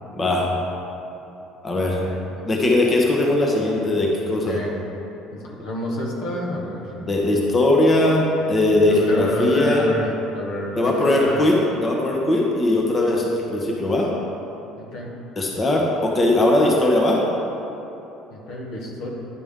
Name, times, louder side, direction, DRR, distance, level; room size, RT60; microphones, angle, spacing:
voice 1, 0.2-0.5 1.6-2.0 2.5-4.6 7.1-9.8 10.8-11.5 11.8-14.1 15.4-17.2, left 1 dB, 25° left, -2 dB, 1.0 m, -19 dB
voice 2, 2.0-2.5 4.3-4.8 5.3-6.8 8.9-11.5 14.8-15.1 18.3-19.1, left 1 dB, 75° left, -2 dB, 1.4 m, -28 dB
10.0 x 5.0 x 3.7 m, 3.0 s
cardioid pair, 110°, 0 cm